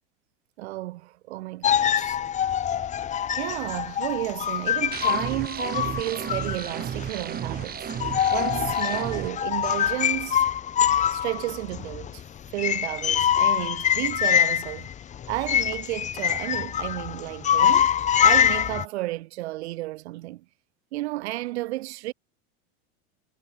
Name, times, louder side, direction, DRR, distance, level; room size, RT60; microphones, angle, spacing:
voice 1, 0.6-2.2 3.3-7.9 8.3-10.5 11.1-12.2 12.5-14.9 15.3-20.4 20.9-22.1, right 18 dB, 80° right, 7.6 m, -32 dB
sound 1, 1.6-7.2 7.6-7.7 7.9-18.8, left 9 dB, 20° left, 0.8 m, -24 dB
sound 2, 4.9-9.3, right 9 dB, 30° right, 4.6 m, -33 dB
supercardioid pair, 135°, 32 cm